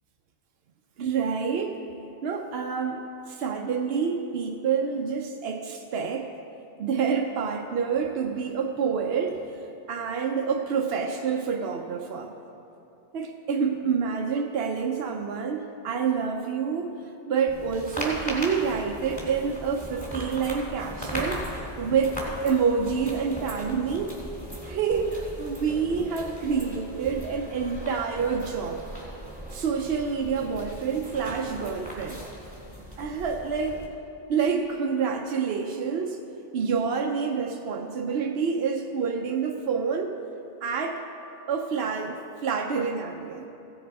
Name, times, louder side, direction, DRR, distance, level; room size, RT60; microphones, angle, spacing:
voice 1, 1.0-1.8 2.2-6.3 6.8-9.4 9.9-12.3 13.1-16.9 17.3-21.5 21.8-24.2 24.6-28.8 29.5-32.2 33.0-33.8 34.3-36.2 36.5-40.2 40.6-41.0 41.5-43.5, right 6 dB, 75° right, 3 dB, 0.9 m, -27 dB
sound 1, 17.5-33.9, equal, 20° left, 2.5 m, -38 dB
16.0 x 7.3 x 4.6 m, 2.9 s
omnidirectional pair, 1.1 m